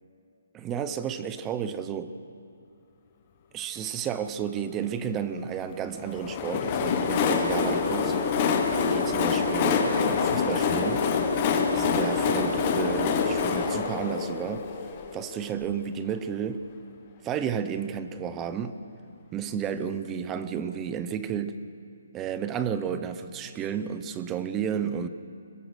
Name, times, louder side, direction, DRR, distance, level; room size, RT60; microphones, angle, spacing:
voice 1, 0.5-2.1 3.5-8.2 8.7-11.1 11.7-14.7 15.1-16.6 17.2-18.8 19.3-21.6 22.1-25.1, right 8 dB, 10° right, 11 dB, 0.5 m, -32 dB
Train, 6.1-15.7, left 5 dB, 20° left, 1.2 m, -26 dB
23.5 x 21.0 x 6.4 m, 2.6 s
hypercardioid pair, 180°, 0 cm